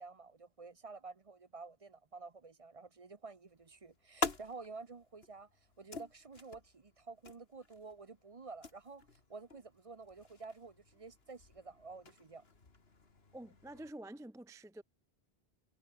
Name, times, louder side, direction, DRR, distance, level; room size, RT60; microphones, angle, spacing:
voice 1, 0.0-5.5 5.8-9.0 9.3-12.4, right 4 dB, 35° right, 0.9 m, -51 dB
sound 1, 3.5-13.9, left 4 dB, 70° left, 2.5 m, -47 dB
voice 2, 13.3-14.8, right 1 dB, 5° right, 0.4 m, -48 dB
omnidirectional pair, 1.1 m